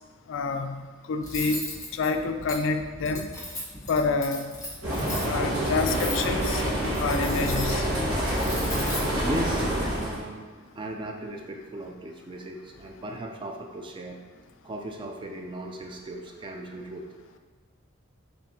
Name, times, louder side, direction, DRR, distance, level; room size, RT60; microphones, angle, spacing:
voice 1, 0.3-0.8 1.1-1.6 1.9-3.3 3.9-4.5 5.3-6.6 7.0-7.8, left 4 dB, 65° left, 7 dB, 0.3 m, -27 dB
Cutlery silverware, 1.2-9.9, left 1 dB, 15° left, 1.0 m, -38 dB
sound 1, 4.8-10.2, equal, 85° right, 1.3 m, -27 dB
voice 2, 9.1-10.5 10.7-14.2 14.6-17.1, right 1 dB, 25° right, 2 dB, 0.4 m, -37 dB
4.4 x 3.3 x 2.7 m, 1.5 s
head